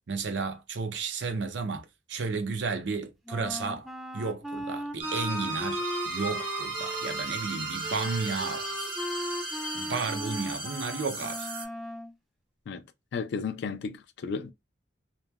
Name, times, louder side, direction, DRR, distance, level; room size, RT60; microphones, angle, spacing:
voice 1, 0.1-3.9 4.1-8.7 9.7-11.5, right 4 dB, 80° right, 0.5 m, -33 dB
Wind instrument woodwind instrument, 3.3-12.1, left 1 dB, ahead, 0.4 m, -38 dB
sound 1, 5.0-11.6, right 3 dB, 65° right, 1.0 m, -35 dB
voice 2, 13.1-14.5, left 5 dB, 70° left, 0.3 m, -33 dB
3.0 x 2.0 x 2.2 m
head